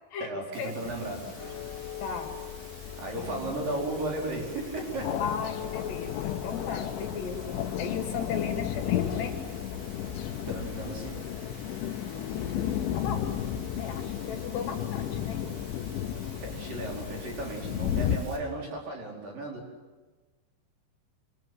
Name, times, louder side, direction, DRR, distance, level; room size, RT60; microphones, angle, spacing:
voice 1, 0.2-1.3 3.0-5.2 10.5-11.3 16.4-19.7, right 2 dB, 45° right, -1 dB, 6.1 m, -35 dB
sound 1, 0.5-18.4, right 2 dB, 30° right, 4.8 m, -51 dB
sound 2, 0.8-18.2, left 10 dB, 80° left, 3.6 m, -34 dB
sound 3, 1.4-11.8, left 10 dB, 35° left, 0.5 m, -46 dB
voice 2, 2.0-2.3 3.1-3.4 5.2-9.4 12.0-13.3 13.8-15.4, left 6 dB, 65° left, 3 dB, 4.5 m, -36 dB
26.5 x 26.0 x 7.9 m, 1.2 s
omnidirectional pair, 5.5 m